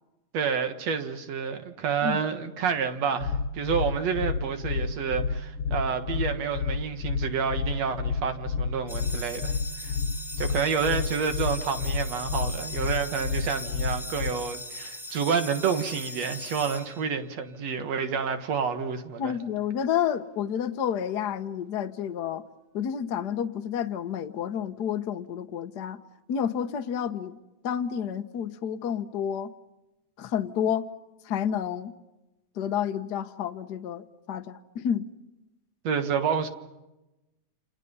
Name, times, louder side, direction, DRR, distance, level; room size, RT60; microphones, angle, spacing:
voice 1, 0.3-9.9 10.4-19.3 35.8-36.5, right 6 dB, 60° right, 2.5 m, -29 dB
sound 1, 3.2-14.3, left 5 dB, 55° left, 1.7 m, -30 dB
sound 2, 8.9-17.5, left 1 dB, ahead, 1.6 m, -40 dB
voice 2, 19.2-22.4 22.7-26.0 26.3-27.4 27.6-29.5 30.2-30.9 31.2-31.9 32.6-35.0, left 8 dB, 75° left, 0.9 m, -30 dB
29.0 x 28.0 x 5.6 m
omnidirectional pair, 3.6 m